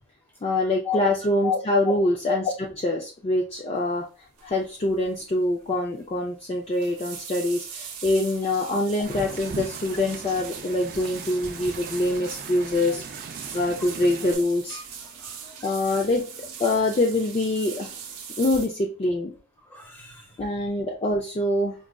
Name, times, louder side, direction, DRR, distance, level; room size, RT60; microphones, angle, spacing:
voice 1, 0.4-4.1 4.4-13.0 13.5-14.8 15.6-17.9 18.4-19.3 20.4-21.7, left 1 dB, 25° left, 0 dB, 0.4 m, -25 dB
sound 1, 4.4-4.6 4.9-5.2 5.5-5.6 6.5-18.7, right 7 dB, 80° right, 0.7 m, -40 dB
Wind, 9.0-14.3, right 4 dB, 40° right, 0.3 m, -40 dB
voice 2, 14.7-15.7 19.7-20.4, left 3 dB, 10° left, 0 dB, 1.0 m, -33 dB
5.0 x 2.3 x 2.2 m, 0.35 s
head